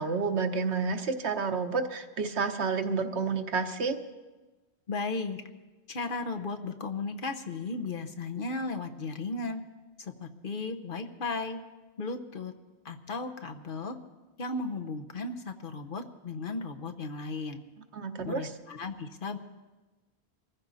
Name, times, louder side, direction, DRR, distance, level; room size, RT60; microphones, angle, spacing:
voice 1, 0.0-4.0 17.9-18.5, right 4 dB, 80° right, 7 dB, 1.3 m, -30 dB
voice 2, 4.9-5.4 5.9-9.6 10.0-11.6 12.0-12.5 12.8-14.0 14.4-17.6 18.2-19.4, left 3 dB, 55° left, 5 dB, 1.1 m, -35 dB
24.0 x 15.0 x 4.1 m, 1.2 s
omnidirectional pair, 1.1 m